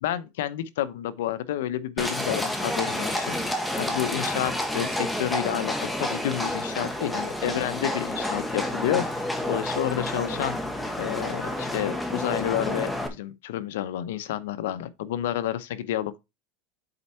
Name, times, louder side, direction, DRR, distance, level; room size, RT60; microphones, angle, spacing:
voice 1, 0.0-5.7 6.0-9.0 9.5-10.6 11.0-16.2, left 12 dB, 85° left, 0.8 m, -30 dB
Livestock farm animals working animals, 2.0-13.1, left 1 dB, 5° left, 1.3 m, -29 dB
7.9 x 4.4 x 4.4 m
supercardioid pair, 140°, 0 cm